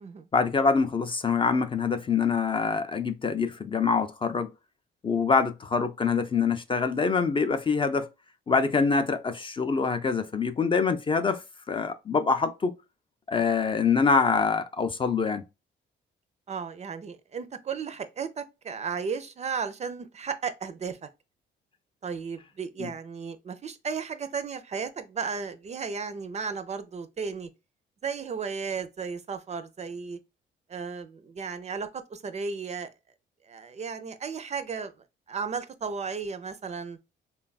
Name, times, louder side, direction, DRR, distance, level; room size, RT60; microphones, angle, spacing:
voice 1, 0.3-4.5 5.0-8.1 8.5-11.4 11.7-12.8 13.3-15.4 22.8-22.9, left 5 dB, 25° left, 0.4 m, -25 dB
voice 2, 16.5-21.0 22.0-27.5 28.0-30.2 30.7-32.9 33.5-34.9 35.3-37.0, right 5 dB, 35° right, 0.4 m, -34 dB
3.3 x 2.3 x 2.3 m
cardioid pair, 90°, 20 cm